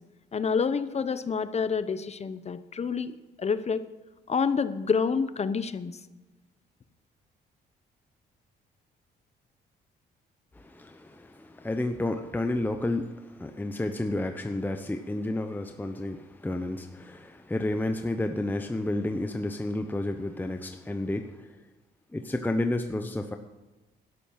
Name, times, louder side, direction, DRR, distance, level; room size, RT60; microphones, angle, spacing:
voice 1, 0.3-3.9 4.3-6.0, left 5 dB, 35° left, 13 dB, 0.9 m, -28 dB
voice 2, 10.5-21.6 22.1-23.4, left 1 dB, 10° left, 6 dB, 0.9 m, -31 dB
12.5 x 10.0 x 5.8 m, 1.1 s
cardioid pair, 80°, 19 cm